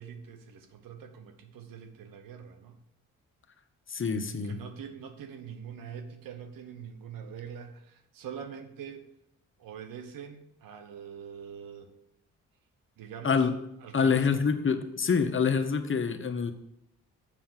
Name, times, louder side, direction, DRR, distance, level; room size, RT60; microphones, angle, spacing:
voice 1, 0.0-2.8 4.4-9.1 9.6-11.9 13.0-13.5 13.8-14.3, right 7 dB, 80° right, 7 dB, 1.1 m, -44 dB
voice 2, 3.9-4.6 13.2-13.5 13.9-16.5, left 5 dB, 40° left, 7 dB, 1.0 m, -26 dB
7.2 x 5.9 x 5.8 m, 0.80 s
supercardioid pair, 60°, 33 cm